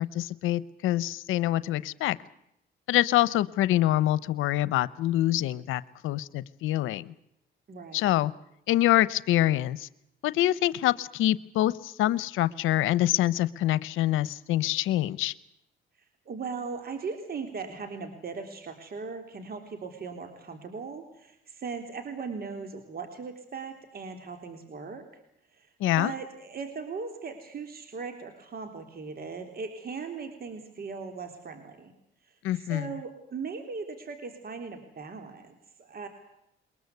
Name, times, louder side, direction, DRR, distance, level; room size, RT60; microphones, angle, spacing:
voice 1, 0.0-2.2 2.9-7.1 7.9-8.3 8.7-9.9 10.2-15.3 25.8-26.1 32.4-32.9, left 14 dB, 90° left, 18 dB, 0.8 m, -25 dB
voice 2, 7.7-8.2 16.3-25.0 25.5-25.7 26.0-31.9 32.3-36.1, right 5 dB, 50° right, 6 dB, 3.6 m, -38 dB
22.5 x 21.5 x 8.2 m, 0.80 s
cardioid pair, 90°, 20 cm